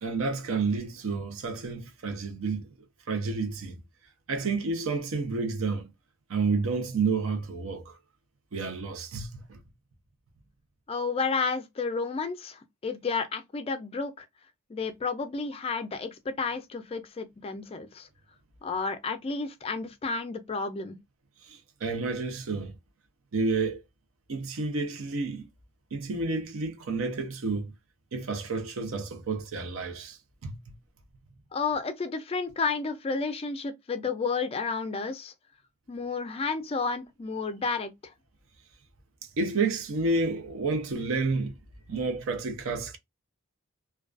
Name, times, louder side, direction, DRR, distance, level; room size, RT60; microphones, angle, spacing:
voice 1, 0.0-2.7 3.1-3.8 4.3-5.9 6.3-8.0 8.5-9.6 21.4-22.8 23.3-23.8 24.3-25.5 25.9-27.7 28.1-30.6 39.4-41.5 41.9-43.0, right 3 dB, 70° right, 0.6 m, -30 dB
voice 2, 10.9-14.3 14.7-18.1 18.6-21.0 31.5-35.3 35.9-38.1, left 4 dB, 25° left, 0.3 m, -31 dB
2.3 x 2.2 x 2.3 m
head